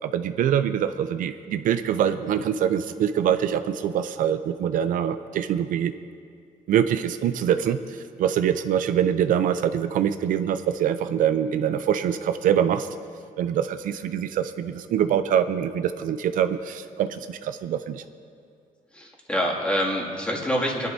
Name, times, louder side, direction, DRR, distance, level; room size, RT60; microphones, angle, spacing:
voice 1, 0.0-5.9 6.7-12.9 13.4-18.0, right 9 dB, 75° right, 10 dB, 0.5 m, -24 dB
voice 2, 18.9-20.9, equal, 10° left, -3 dB, 2.3 m, -26 dB
23.5 x 11.0 x 2.7 m, 2.4 s
cardioid pair, 120°, 14 cm